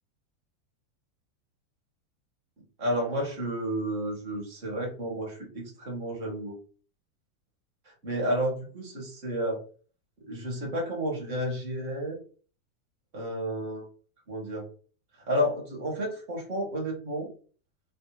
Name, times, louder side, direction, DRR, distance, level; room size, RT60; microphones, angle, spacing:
voice 1, 2.8-6.5 7.8-9.6 10.2-12.2 13.1-13.9 14.3-14.7 15.3-17.3, equal, 55° right, 0 dB, 1.6 m, -31 dB
3.4 x 2.1 x 3.0 m, 0.39 s
figure-of-eight pair, 85°, 0 cm